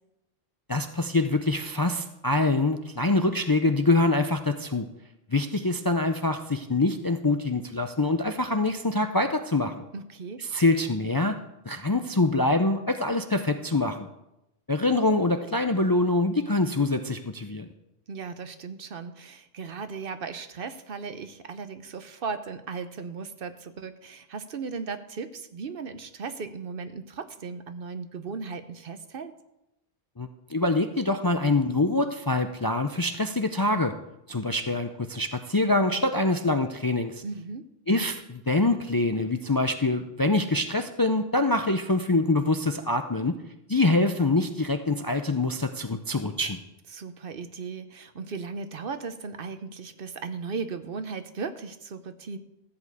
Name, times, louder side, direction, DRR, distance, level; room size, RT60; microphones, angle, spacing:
voice 1, 0.7-4.9 5.3-9.8 10.4-11.4 11.7-14.1 14.7-17.7 30.2-33.9 34.3-37.2 37.9-43.3 43.7-46.6, left 2 dB, 30° left, 7 dB, 0.5 m, -25 dB
voice 2, 9.9-10.4 18.1-29.3 37.2-37.7 46.9-52.4, right 5 dB, 60° right, 10 dB, 1.0 m, -37 dB
14.5 x 5.3 x 8.0 m, 0.88 s
omnidirectional pair, 1.1 m